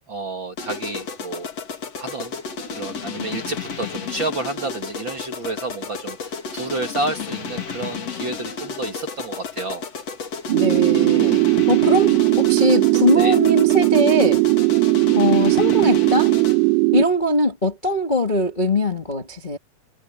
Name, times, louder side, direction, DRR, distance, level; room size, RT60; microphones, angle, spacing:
voice 1, 0.1-1.5 2.0-2.4 2.7-9.8 13.1-13.4, right 2 dB, 40° right, 1.8 m, -30 dB
sound 1, 0.6-16.8, left 6 dB, 45° left, 3.2 m, -32 dB
voice 2, 10.5-14.4 15.1-16.3 16.9-19.6, left 1 dB, 25° left, 1.1 m, -21 dB
sound 2, 10.5-17.0, right 25 dB, 90° right, 2.9 m, -18 dB
omnidirectional pair, 4.7 m